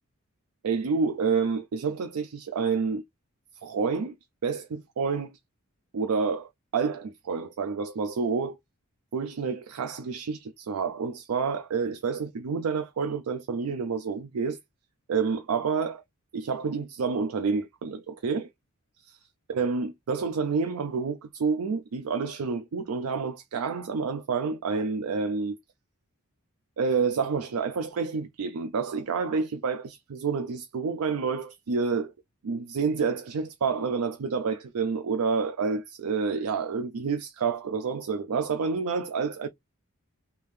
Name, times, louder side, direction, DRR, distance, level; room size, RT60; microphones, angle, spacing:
voice 1, 0.6-3.0 3.6-4.2 4.4-5.4 5.9-8.6 9.1-14.6 15.1-16.0 16.3-18.5 19.5-25.6 26.8-32.1 32.4-39.5, right 5 dB, 90° right, 0.4 m, -29 dB
3.4 x 2.7 x 3.2 m
head